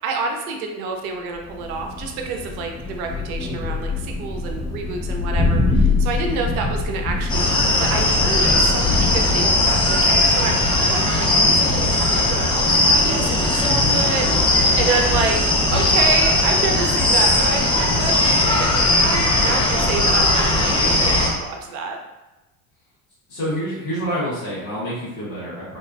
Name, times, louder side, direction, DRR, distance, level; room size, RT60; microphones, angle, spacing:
voice 1, 0.0-15.4 15.7-22.0, right 4 dB, 80° right, 3 dB, 0.6 m, -28 dB
Thunder, 1.3-15.9, left 3 dB, 45° left, 1.4 m, -26 dB
sound 1, 7.3-21.3, left 1 dB, 10° left, 0.6 m, -18 dB
voice 2, 23.3-25.8, equal, 80° left, -9 dB, 1.4 m, -27 dB
2.8 x 2.3 x 2.2 m, 1.1 s
hypercardioid pair, 70°, 42 cm